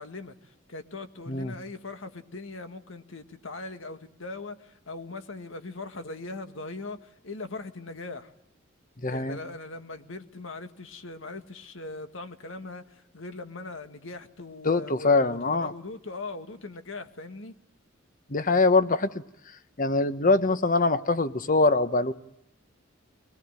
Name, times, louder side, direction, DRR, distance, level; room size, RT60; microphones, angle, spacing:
voice 1, 0.0-8.3 9.1-17.5, left 3 dB, 75° left, 1.8 m, -40 dB
voice 2, 9.0-9.4 14.6-15.7 18.3-19.2 19.8-22.1, left 3 dB, 45° left, 1.1 m, -23 dB
23.5 x 20.0 x 9.0 m
head